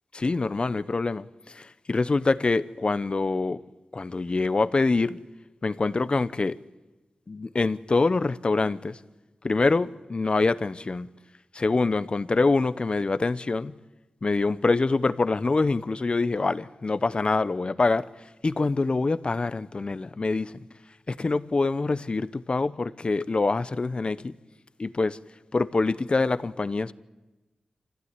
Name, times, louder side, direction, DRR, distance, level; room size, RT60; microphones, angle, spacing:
voice 1, 0.1-3.6 3.9-5.2 5.6-6.5 7.3-9.0 9.4-11.1 11.5-13.7 14.2-18.0 18.4-20.5 21.1-24.3 24.8-25.2 25.5-26.9, left 3 dB, 45° left, 0.9 m, -25 dB
26.5 x 15.0 x 9.7 m
cardioid pair, 60°, 2 cm